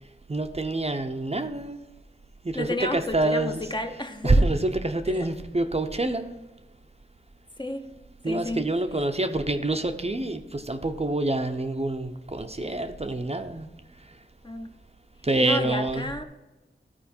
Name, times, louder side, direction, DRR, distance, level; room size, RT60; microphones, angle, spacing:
voice 1, 0.3-1.8 2.4-3.6 4.2-6.4 8.2-13.7 15.2-16.1, right 2 dB, 30° right, 6 dB, 0.7 m, -26 dB
voice 2, 2.5-4.5 5.1-5.3 7.6-7.9 8.2-8.6 14.4-14.7 15.4-16.3, left 2 dB, 20° left, 6 dB, 0.7 m, -32 dB
13.0 x 4.5 x 4.3 m, 1.1 s
wide cardioid pair, 50°, 21 cm